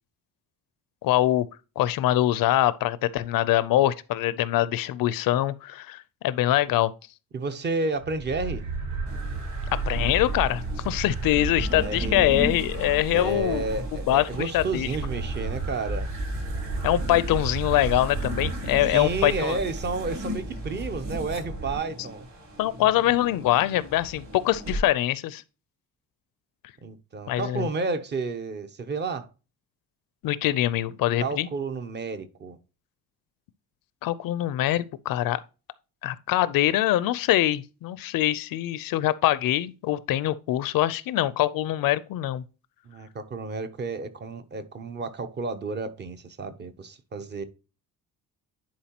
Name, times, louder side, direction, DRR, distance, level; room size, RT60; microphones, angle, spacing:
voice 1, 1.0-1.5 1.8-6.9 9.7-13.7 14.1-14.9 16.8-19.6 22.6-25.4 27.3-27.7 30.2-31.5 34.0-35.4 36.0-42.4, left 14 dB, 70° left, 0.5 m, -24 dB
voice 2, 7.3-8.6 11.4-12.4 13.1-16.1 18.9-22.3 26.8-29.3 31.2-32.6 42.8-47.4, right 3 dB, 30° right, 0.6 m, -31 dB
sound 1, 8.0-21.8, right 3 dB, 75° right, 3.3 m, -33 dB
sound 2, 9.1-24.8, equal, 50° right, 3.0 m, -39 dB
10.5 x 4.5 x 2.9 m
cardioid pair, 175°, 35 cm